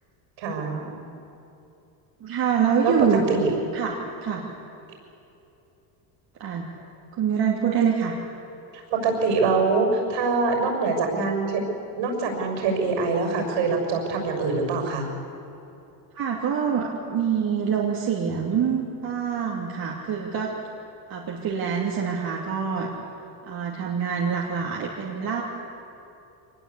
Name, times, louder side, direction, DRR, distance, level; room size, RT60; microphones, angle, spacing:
voice 1, 0.4-1.0 2.8-2.9 3.3-3.5 8.7-11.6 11.9-15.0, right 4 dB, 70° right, 3 dB, 6.6 m, -24 dB
voice 2, 2.2-3.2 3.7-4.4 6.4-6.6 7.1-8.2 16.1-20.5 21.1-22.9 23.4-25.4, right 7 dB, 50° right, -2 dB, 2.7 m, -25 dB
23.5 x 20.0 x 8.4 m, 2.8 s
supercardioid pair, 110°, 47 cm